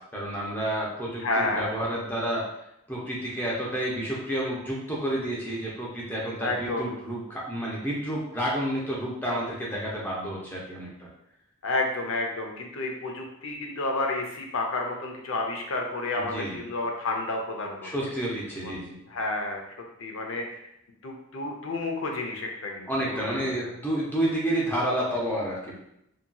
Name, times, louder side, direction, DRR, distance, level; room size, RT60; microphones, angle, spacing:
voice 1, 0.1-2.4 2.9-10.9 16.2-16.6 17.8-19.0 22.9-25.8, right 1 dB, 10° left, -5 dB, 0.6 m, -30 dB
voice 2, 1.2-1.8 6.4-6.9 11.6-17.9 18.6-18.7 19.1-19.7 20.0-20.6 21.0-23.7, left 2 dB, 65° left, 2 dB, 0.5 m, -30 dB
2.9 x 2.7 x 2.2 m, 0.80 s
head